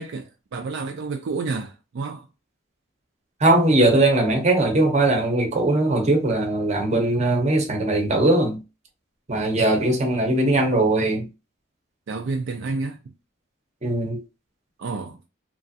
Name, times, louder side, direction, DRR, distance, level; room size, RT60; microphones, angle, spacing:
voice 1, 0.0-2.3 12.1-13.0 14.8-15.2, right 4 dB, 65° right, 0.4 m, -30 dB
voice 2, 3.4-8.6 9.3-11.3 13.8-14.2, right 2 dB, 35° right, 0.7 m, -20 dB
3.0 x 2.4 x 2.7 m
head